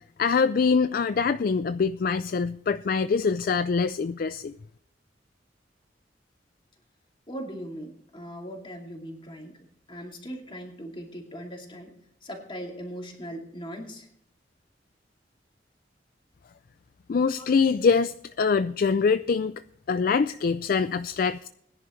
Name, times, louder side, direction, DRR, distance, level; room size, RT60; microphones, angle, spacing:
voice 1, 0.2-4.5 17.1-19.6 19.9-21.5, left 5 dB, 50° left, 12 dB, 0.4 m, -24 dB
voice 2, 7.3-11.9 12.2-14.1 17.4-17.9 20.3-20.4, equal, 30° left, 1 dB, 2.6 m, -40 dB
20.5 x 10.5 x 3.2 m, 0.74 s
head